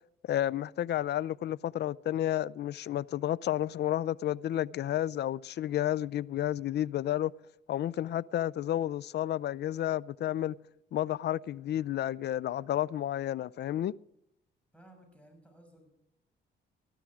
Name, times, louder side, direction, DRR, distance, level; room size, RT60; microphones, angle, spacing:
voice 1, 0.2-7.3 7.7-10.6 10.9-13.9, left 12 dB, 60° left, 0.5 m, -31 dB
voice 2, 14.7-15.9, right 1 dB, 5° left, 6.3 m, -57 dB
19.0 x 13.0 x 4.8 m
cardioid pair, 90°, 20 cm